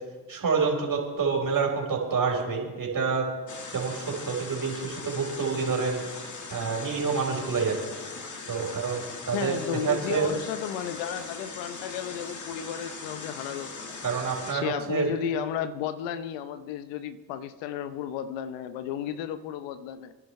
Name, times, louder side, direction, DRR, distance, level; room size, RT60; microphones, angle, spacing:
voice 1, 0.3-3.3 3.7-6.0 6.5-7.8 8.5-9.6 9.8-10.3 14.0-15.1, right 5 dB, 50° right, 0 dB, 4.5 m, -27 dB
sound 1, 3.5-14.5, left 4 dB, 40° left, 1.7 m, -40 dB
voice 2, 9.3-14.0 14.5-20.1, left 9 dB, 80° left, 11 dB, 0.8 m, -33 dB
26.5 x 11.0 x 3.2 m, 1.3 s
hypercardioid pair, 45°, 43 cm